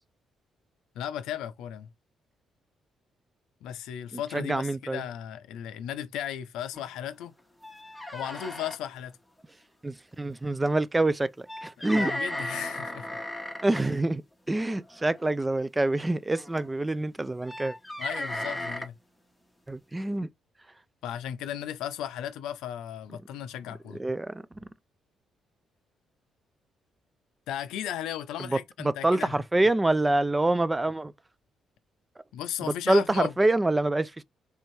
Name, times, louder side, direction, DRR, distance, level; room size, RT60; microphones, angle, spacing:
voice 1, 1.0-1.9 3.6-7.3 8.1-9.2 11.8-13.2 18.0-18.9 21.0-24.0 27.5-29.3 32.3-33.3, left 10 dB, 90° left, 0.4 m, -35 dB
voice 2, 4.1-5.0 9.8-12.1 13.6-14.2 14.5-17.8 19.7-20.3 24.0-24.4 28.4-31.1 32.9-34.2, right 2 dB, 15° right, 0.3 m, -26 dB
sound 1, 6.7-6.9 7.2-7.3 7.6-8.8 10.7-10.8 11.5-13.8 14.9-15.2 16.4-16.7 17.4-18.9, left 1 dB, 5° left, 0.9 m, -35 dB
3.4 x 2.7 x 3.1 m
cardioid pair, 90°, 0 cm